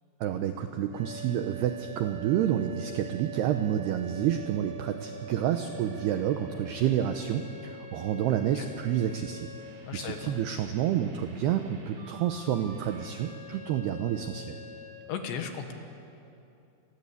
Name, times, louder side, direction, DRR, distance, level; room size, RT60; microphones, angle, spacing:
voice 1, 0.2-9.5 9.9-14.6, right 10 dB, 80° right, 7 dB, 2.4 m, -29 dB
sound 1, 0.9-14.9, right 4 dB, 55° right, 5.9 m, -45 dB
voice 2, 9.9-10.3 15.1-15.7, left 7 dB, 65° left, 5 dB, 3.5 m, -35 dB
29.0 x 21.5 x 8.4 m, 2.7 s
omnidirectional pair, 5.8 m